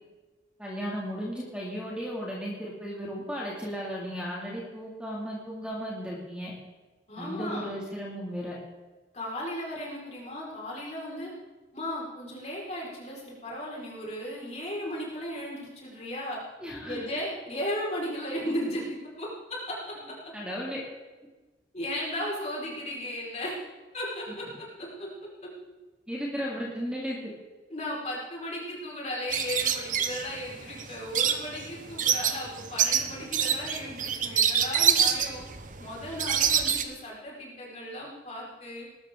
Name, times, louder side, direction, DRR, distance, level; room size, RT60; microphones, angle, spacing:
voice 1, 0.6-6.5 7.2-8.6 16.6-17.1 20.3-20.8 26.1-27.3, equal, 5° right, -4 dB, 2.5 m, -35 dB
voice 2, 7.1-7.7 9.1-11.3 11.7-16.4 16.8-20.1 21.7-23.6 23.9-24.5 24.8-25.1 25.4-25.5 27.7-35.4 35.8-38.9, left 1 dB, 40° left, -4 dB, 4.9 m, -35 dB
sound 1, 29.3-36.8, right 8 dB, 50° right, 0.9 m, -26 dB
20.0 x 12.5 x 3.8 m, 1.2 s
head